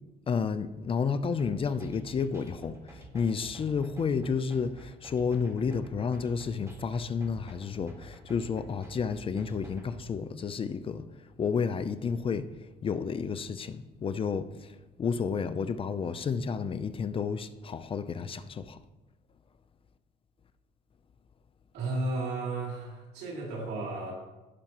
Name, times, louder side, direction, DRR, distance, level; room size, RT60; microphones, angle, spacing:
voice 1, 0.3-18.8, left 5 dB, 30° left, 0.5 m, -31 dB
sound 1, 1.4-10.0, right 1 dB, 15° right, 2.0 m, -49 dB
voice 2, 21.7-24.1, right 2 dB, 85° right, 2.9 m, -33 dB
16.5 x 5.8 x 3.0 m
cardioid pair, 110°, 17 cm